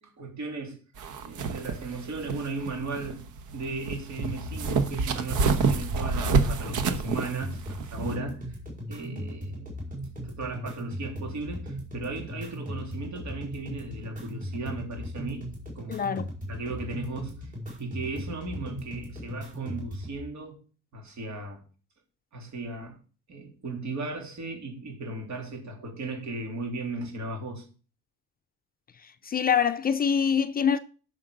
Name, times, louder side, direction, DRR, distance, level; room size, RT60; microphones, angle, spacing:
voice 1, 0.0-0.8 1.2-8.6 8.9-9.7 10.2-15.5 15.7-16.0 16.5-17.5 17.8-20.6 20.9-21.6 22.3-23.0 23.3-27.7, right 3 dB, 65° right, 3.4 m, -36 dB
sound 1, 1.0-8.2, right 4 dB, 80° right, 1.2 m, -29 dB
sound 2, 4.2-20.2, equal, 25° right, 4.8 m, -38 dB
voice 2, 15.9-16.2 29.0-30.8, left 7 dB, 30° left, 0.4 m, -25 dB
9.9 x 6.6 x 5.2 m
cardioid pair, 170°, 30 cm